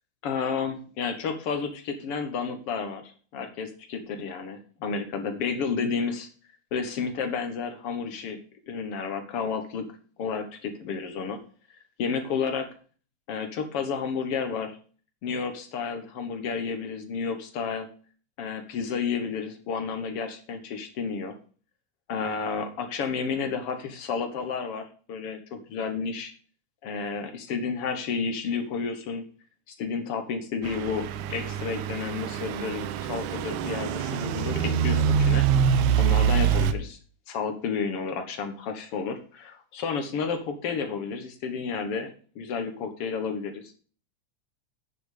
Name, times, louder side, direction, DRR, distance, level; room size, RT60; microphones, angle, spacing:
voice 1, 0.2-6.3 6.7-8.4 8.7-9.9 10.2-11.4 12.0-12.7 13.3-14.8 15.2-17.9 18.4-21.3 22.1-26.3 26.8-29.2 29.7-35.4 36.0-37.0 37.3-43.7, left 5 dB, 55° left, 7 dB, 2.0 m, -31 dB
Truck / Idling, 30.6-36.7, right 8 dB, 80° right, 2.1 m, -25 dB
9.2 x 7.0 x 5.0 m, 0.41 s
omnidirectional pair, 3.4 m